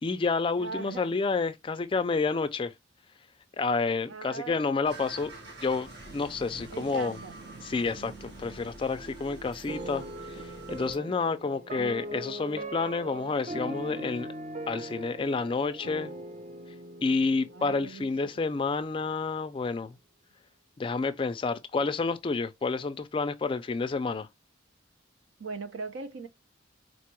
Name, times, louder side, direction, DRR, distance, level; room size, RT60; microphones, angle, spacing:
voice 1, 0.0-2.7 3.6-5.3 5.6-7.2 7.6-14.3 14.7-16.1 17.0-20.0 20.8-24.3, left 4 dB, 25° left, 0.3 m, -29 dB
voice 2, 0.6-1.2 4.1-4.7 6.7-7.3 11.0-11.2 17.5-18.4 25.4-26.3, right 4 dB, 85° right, 0.5 m, -40 dB
sound 1, 4.9-11.0, right 3 dB, 55° right, 1.0 m, -45 dB
sound 2, 9.7-18.8, right 1 dB, 40° right, 0.5 m, -40 dB
4.2 x 2.2 x 2.9 m
head